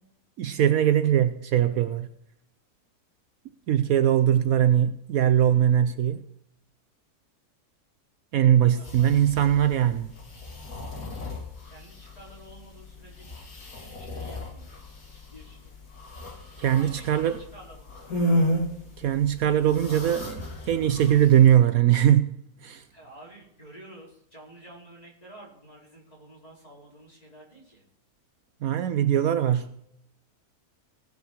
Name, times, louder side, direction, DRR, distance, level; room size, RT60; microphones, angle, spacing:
voice 1, 0.4-2.1 3.7-6.2 8.3-10.1 16.6-17.4 19.0-22.4 22.6-22.8 28.6-29.7, right 10 dB, 70° right, 1.1 m, -21 dB
voice 2, 8.7-9.2 11.7-14.8 15.1-15.7 16.7-18.5 22.9-27.8, right 1 dB, 25° left, 5.0 m, -50 dB
sound 1, 8.8-21.6, equal, 65° left, 2.7 m, -34 dB
18.5 x 6.6 x 6.3 m
omnidirectional pair, 1.6 m